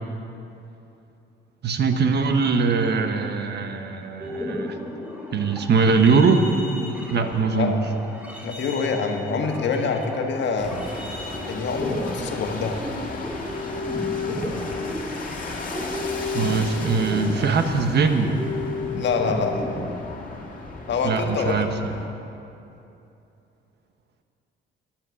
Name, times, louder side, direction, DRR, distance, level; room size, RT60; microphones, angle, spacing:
voice 1, 1.6-4.8 5.3-6.4 7.1-7.7 16.3-18.4 21.0-21.7, right 4 dB, 55° right, 6 dB, 1.1 m, -21 dB
sound 1, 4.2-20.3 20.7-21.0, left 2 dB, 5° right, 2.6 m, -33 dB
voice 2, 8.4-10.8 11.5-12.8 18.9-19.7 20.9-21.7, left 4 dB, 65° left, 3 dB, 1.5 m, -26 dB
sound 2, 10.6-22.1, left 3 dB, 45° left, 2.0 m, -35 dB
11.5 x 10.5 x 7.0 m, 2.8 s
cardioid pair, 90°, 20 cm